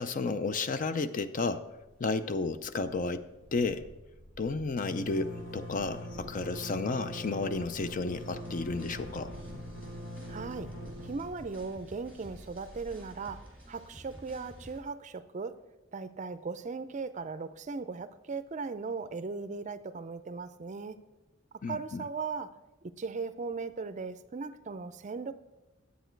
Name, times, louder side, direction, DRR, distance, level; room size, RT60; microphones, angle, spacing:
voice 1, 0.0-3.9 4.4-9.4 21.6-22.1, left 3 dB, 40° left, 12 dB, 0.5 m, -32 dB
sound 1, 1.7-2.2 2.5-2.6 2.9-13.5, equal, 70° left, 1.6 m, -43 dB
sound 2, 8.2-14.8, equal, 5° left, 2.3 m, -52 dB
voice 2, 10.3-10.7 11.0-15.6 15.9-21.0 21.7-22.5 23.0-25.3, right 4 dB, 35° right, 12 dB, 0.4 m, -38 dB
10.5 x 8.2 x 4.5 m, 1.1 s
head